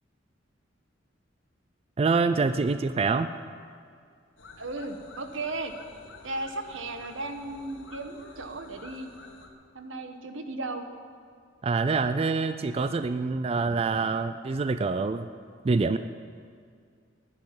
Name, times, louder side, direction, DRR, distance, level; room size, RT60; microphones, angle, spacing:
voice 1, 2.0-3.3 11.6-15.3 15.6-16.0, right 4 dB, 30° right, 11 dB, 0.3 m, -26 dB
sound 1, 4.4-9.5, left 3 dB, 85° left, 1.6 m, -50 dB
voice 2, 4.6-5.7 6.2-9.1 9.7-10.8, right 2 dB, 85° right, 7 dB, 1.3 m, -35 dB
10.5 x 9.8 x 10.0 m, 2.2 s
head